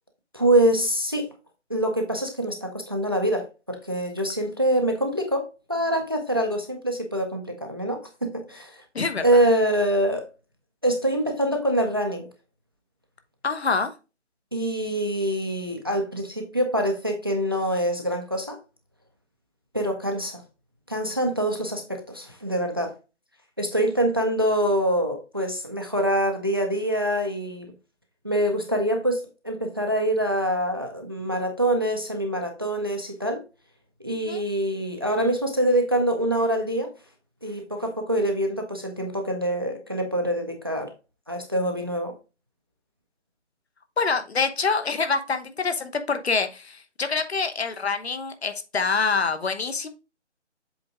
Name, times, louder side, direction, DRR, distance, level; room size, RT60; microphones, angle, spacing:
voice 1, 0.3-1.3 1.7-8.8 9.2-10.3 10.8-12.3 14.5-18.6 19.7-20.4 20.9-22.9 23.6-27.7 28.2-33.4 34.0-36.9 37.4-40.9 41.3-42.1, right 1 dB, 20° right, 4 dB, 0.5 m, -25 dB
voice 2, 8.9-9.4 13.4-13.9 34.3-34.4 44.0-49.9, left 4 dB, 60° left, 9 dB, 1.1 m, -26 dB
7.6 x 3.5 x 3.6 m, 0.30 s
figure-of-eight pair, 155°, 36 cm